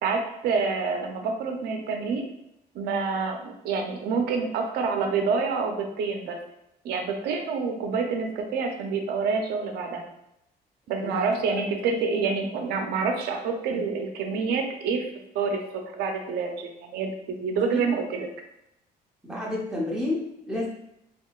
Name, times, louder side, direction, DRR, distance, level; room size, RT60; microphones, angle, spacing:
voice 1, 0.0-2.3 2.7-6.4 6.8-10.0 10.9-18.3, right 4 dB, 75° right, 4 dB, 0.6 m, -27 dB
voice 2, 19.2-20.7, left 1 dB, 5° right, -4 dB, 0.9 m, -30 dB
3.6 x 3.0 x 2.4 m, 0.82 s
cardioid pair, 110°, 17 cm